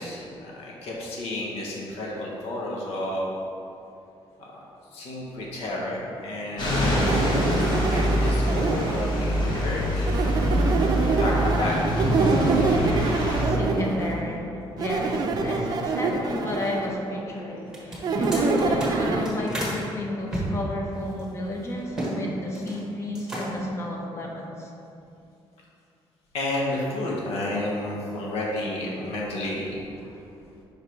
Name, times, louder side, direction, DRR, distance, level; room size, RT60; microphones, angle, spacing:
voice 1, 0.0-3.3 4.4-4.6 4.9-10.1 10.7-11.8 26.3-29.8, left 1 dB, 85° left, -3 dB, 1.1 m, -31 dB
sound 1, 6.6-13.4, equal, 50° left, 1.1 m, -24 dB
sound 2, 7.0-9.2 10.0-14.2 14.8-16.9 18.0-19.3, right 3 dB, 40° right, 0.5 m, -25 dB
voice 2, 13.4-24.7 30.1-30.2, left 1 dB, 30° left, 0 dB, 0.8 m, -32 dB
sound 3, 17.6-19.8 20.3-22.2 22.4-22.8 23.1-23.7, right 1 dB, 5° right, 1.3 m, -33 dB
5.2 x 5.0 x 4.7 m, 2.7 s
cardioid pair, 165°, 10 cm